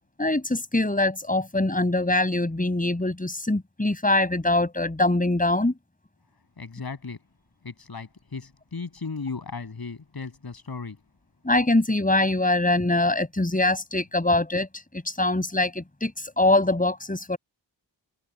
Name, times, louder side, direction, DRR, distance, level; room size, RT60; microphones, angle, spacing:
voice 1, 0.2-5.7 11.4-17.4, left 2 dB, 20° left, 7.3 m, -23 dB
voice 2, 6.6-7.2 7.6-11.0, left 4 dB, 55° left, 6.8 m, -36 dB
wide cardioid pair, 90°, 45 cm